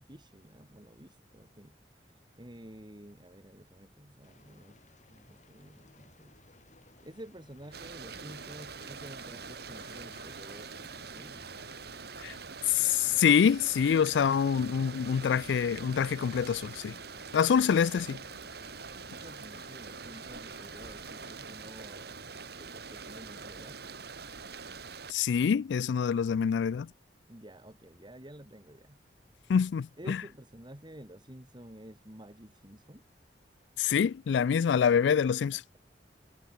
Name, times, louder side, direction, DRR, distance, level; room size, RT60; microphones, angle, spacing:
voice 1, 0.0-4.8 5.1-6.4 7.0-11.4 17.6-17.7 18.9-22.3 22.6-23.8 27.3-29.0 30.0-33.0, right 1 dB, 25° right, 3.5 m, -51 dB
sound 1, 4.2-21.4, left 2 dB, 45° left, 7.1 m, -59 dB
sound 2, 7.7-25.1, right 5 dB, 65° right, 3.0 m, -44 dB
voice 2, 12.7-17.0 17.3-18.2 25.1-26.9 29.5-30.2 33.8-35.8, left 7 dB, 85° left, 0.4 m, -26 dB
head